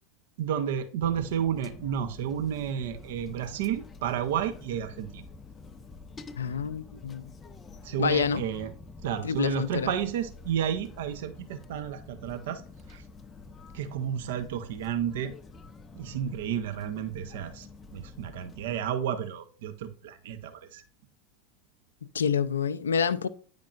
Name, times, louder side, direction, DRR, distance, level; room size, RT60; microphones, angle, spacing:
voice 1, 0.4-5.3 7.8-8.7 9.0-12.6 12.9-13.0 13.7-15.3 15.9-17.7 17.9-20.8, right 9 dB, 65° right, 0.7 m, -31 dB
sound 1, 1.0-18.8, left 4 dB, 20° left, 0.5 m, -48 dB
voice 2, 6.4-7.3 8.0-8.4 9.2-9.9 22.1-23.3, left 6 dB, 75° left, 0.4 m, -27 dB
9.2 x 5.2 x 2.4 m
figure-of-eight pair, 85°, 0 cm